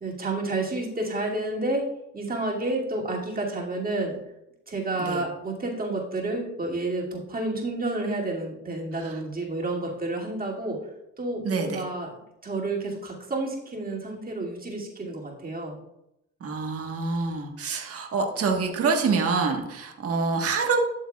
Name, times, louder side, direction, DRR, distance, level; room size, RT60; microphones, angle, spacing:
voice 1, 0.0-4.2 4.7-10.8 11.2-12.1 12.4-15.8, right 2 dB, 30° right, -3 dB, 2.5 m, -30 dB
voice 2, 11.4-11.8 16.4-20.8, right 4 dB, 50° right, 2 dB, 1.5 m, -26 dB
12.0 x 7.1 x 2.4 m, 0.86 s
cardioid pair, 90°, 30 cm